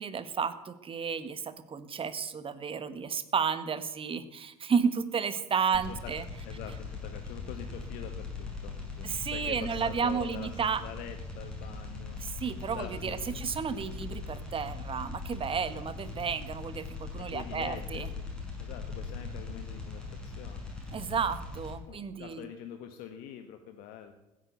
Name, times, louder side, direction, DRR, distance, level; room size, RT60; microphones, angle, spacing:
voice 1, 0.0-6.2 9.0-10.8 12.2-18.1 20.9-22.5, right 6 dB, 30° right, 13 dB, 1.5 m, -32 dB
voice 2, 5.7-6.1 6.4-12.2 12.7-13.5 17.2-18.1 18.6-20.7 21.9-24.1, left 9 dB, 55° left, 7 dB, 1.4 m, -45 dB
sound 1, 5.7-21.7, left 3 dB, 5° left, 6.4 m, -40 dB
15.5 x 9.7 x 8.1 m, 1.0 s
figure-of-eight pair, 65°, 18 cm